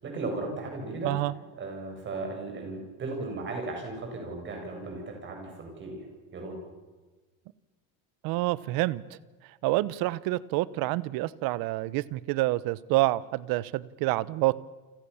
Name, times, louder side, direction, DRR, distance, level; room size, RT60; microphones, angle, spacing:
voice 1, 0.0-1.2 1.5-6.0 6.3-6.6, right 3 dB, 25° right, 3 dB, 7.8 m, -36 dB
voice 2, 8.2-9.0 9.6-14.5, right 18 dB, 50° right, 19 dB, 1.0 m, -27 dB
30.0 x 25.5 x 7.2 m, 1.3 s
cardioid pair, 175°, 45 cm